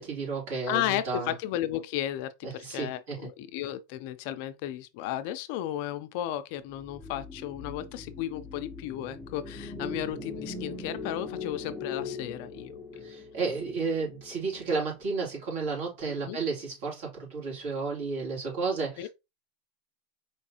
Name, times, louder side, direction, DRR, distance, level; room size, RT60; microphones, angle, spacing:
voice 1, 0.0-1.3 2.4-3.3 13.0-19.1, right 4 dB, 70° right, 3.1 m, -32 dB
voice 2, 0.7-13.0 16.2-16.4 19.0-19.1, left 12 dB, 55° left, 0.5 m, -34 dB
sound 1, 6.7-15.1, left 3 dB, ahead, 0.7 m, -41 dB
4.7 x 3.2 x 2.9 m
supercardioid pair, 155°, 0 cm